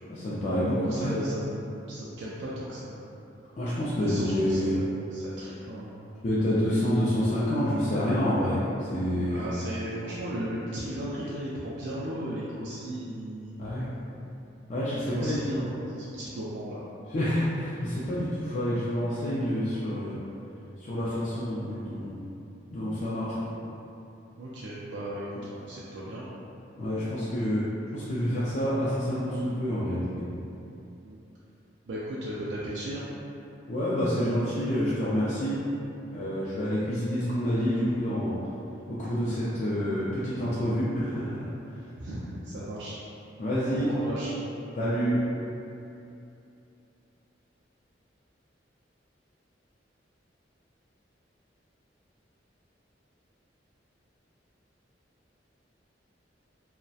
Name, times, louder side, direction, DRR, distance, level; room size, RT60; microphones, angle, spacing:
voice 1, 0.1-1.1 3.6-4.8 6.2-8.6 8.9-9.4 13.6-13.9 14.7-15.6 17.1-20.2 20.8-22.2 22.7-23.5 26.8-27.6 27.9-30.1 33.7-35.6 36.1-38.4 38.9-41.5 43.4-43.9 44.8-45.2, equal, 40° left, -10 dB, 0.3 m, -28 dB
voice 2, 0.8-2.9 4.0-6.2 9.3-14.0 15.1-16.8 18.1-18.2 24.4-26.4 31.0-31.2 31.9-33.1 42.0-42.9 43.7-44.3, right 1 dB, 65° right, -7 dB, 0.3 m, -36 dB
2.6 x 2.0 x 2.2 m, 2.8 s
head